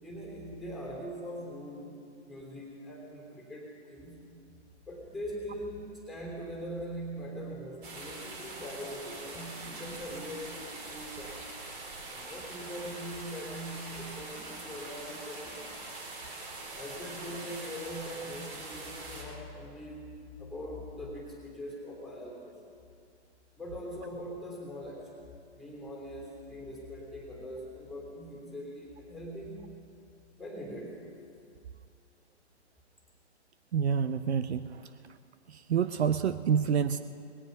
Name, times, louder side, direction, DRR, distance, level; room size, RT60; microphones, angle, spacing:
voice 1, 0.0-1.9 2.2-4.3 4.9-11.4 12.1-15.7 16.7-22.6 23.6-25.3 25.5-29.6 30.4-31.0, equal, ahead, -2 dB, 3.0 m, -42 dB
sound 1, 7.8-19.2, right 2 dB, 45° right, 4.0 m, -43 dB
voice 2, 33.7-34.9 35.5-37.0, right 7 dB, 65° right, 12 dB, 0.6 m, -28 dB
19.5 x 17.5 x 4.0 m, 2.4 s
hypercardioid pair, 145°, 35 cm